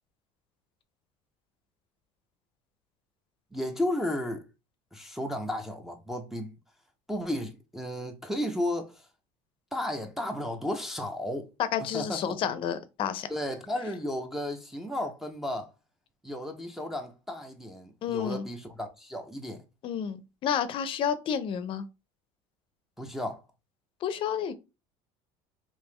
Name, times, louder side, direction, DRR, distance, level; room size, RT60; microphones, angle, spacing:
voice 1, 3.5-4.4 4.9-6.5 7.1-9.1 9.7-11.5 11.9-12.4 13.3-15.7 16.2-19.6 23.0-23.4, left 1 dB, 5° right, 0.5 m, -33 dB
voice 2, 11.6-13.3 18.0-18.5 19.8-21.8 24.0-24.5, left 8 dB, 45° left, 0.5 m, -30 dB
3.5 x 2.8 x 3.2 m
cardioid pair, 120°, 12 cm